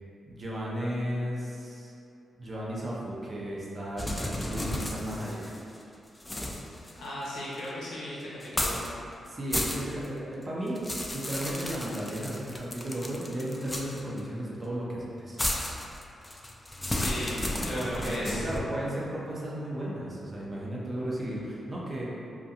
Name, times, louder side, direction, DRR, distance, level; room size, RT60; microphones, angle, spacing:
voice 1, 0.3-1.9 2.4-5.4 9.2-15.4 17.7-22.0, right 1 dB, 40° right, -5 dB, 0.6 m, -34 dB
sound 1, 4.0-5.8 6.2-7.7 8.4-8.9 9.3-10.1 10.4-14.2 15.4-18.6, left 1 dB, 20° left, 0.3 m, -33 dB
voice 2, 7.0-8.9 16.9-18.4, left 1 dB, 85° left, -7 dB, 0.6 m, -36 dB
2.5 x 2.3 x 2.7 m, 2.6 s
cardioid pair, 55°, 0 cm